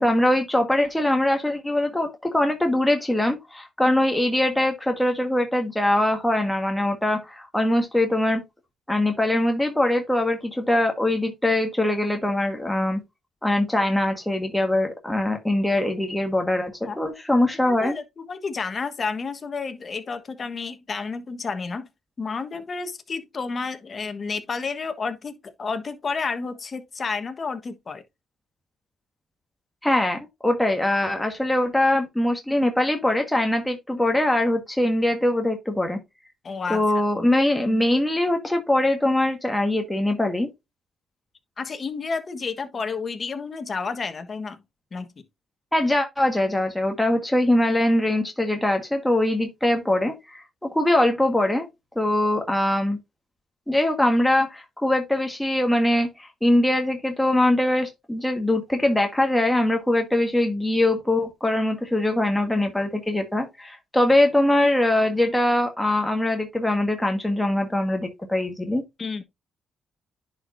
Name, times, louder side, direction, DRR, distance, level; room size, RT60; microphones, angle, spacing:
voice 1, 0.0-8.4 8.9-13.0 13.4-17.9 29.8-36.0 36.7-40.5 45.7-51.7 51.9-53.0 53.7-68.8, left 1 dB, 5° left, 1.5 m, -22 dB
voice 2, 17.6-21.9 22.2-28.0 36.4-36.8 37.1-37.2 37.7-37.9 41.6-44.6 44.9-45.2 69.0-69.2, left 4 dB, 40° left, 1.3 m, -31 dB
10.5 x 4.9 x 2.6 m
cardioid pair, 90°, 0 cm